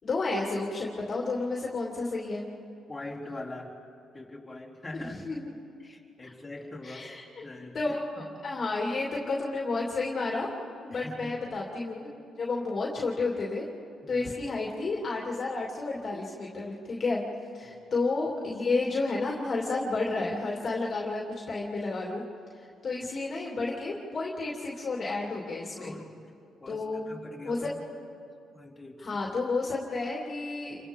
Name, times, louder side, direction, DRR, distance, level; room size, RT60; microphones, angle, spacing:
voice 1, 0.0-2.5 4.9-5.5 6.2-6.3 6.8-7.4 7.7-10.5 10.8-12.1 12.4-13.7 14.1-17.2 17.5-22.2 22.8-25.9 26.7-27.0 27.4-27.6 29.0-30.8, left 3 dB, 45° left, -3 dB, 2.8 m, -31 dB
voice 2, 2.9-3.7 4.1-5.2 5.8-7.1 7.4-8.4 10.9-11.4 14.0-14.3 17.6-17.8 25.8-26.2 26.6-27.8 28.5-29.1, left 2 dB, 15° left, -6 dB, 4.1 m, -43 dB
29.0 x 24.0 x 3.7 m, 2.5 s
cardioid pair, 90°, 0 cm